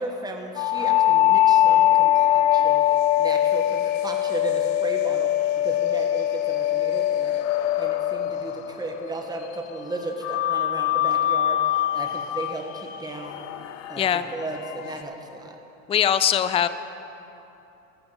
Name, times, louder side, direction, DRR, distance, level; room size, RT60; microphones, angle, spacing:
voice 1, 0.0-2.8 3.2-5.3 5.6-7.4 7.8-13.5 13.9-15.6, right 2 dB, 10° right, 2 dB, 1.4 m, -35 dB
sound 1, 0.6-9.4 10.2-15.0, left 12 dB, 65° left, 0.7 m, -22 dB
voice 2, 15.9-16.7, left 9 dB, 15° left, 13 dB, 0.4 m, -21 dB
14.0 x 13.5 x 3.9 m, 2.9 s
hypercardioid pair, 75°, 41 cm